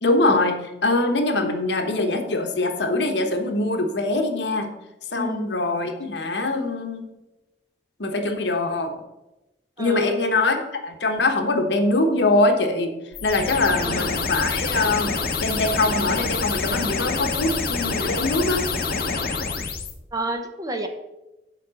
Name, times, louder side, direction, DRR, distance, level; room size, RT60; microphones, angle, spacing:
voice 1, 0.0-4.7 5.1-7.0 8.0-8.9 9.8-12.9 13.2-15.1 15.4-18.6, left 2 dB, 75° left, 5 dB, 1.1 m, -23 dB
voice 2, 5.1-5.5 9.8-10.2 13.8-14.1 20.1-20.9, equal, 20° right, 6 dB, 0.7 m, -29 dB
sound 1, 13.1-19.9, left 4 dB, 55° left, 1.0 m, -26 dB
7.4 x 4.8 x 7.0 m, 0.97 s
head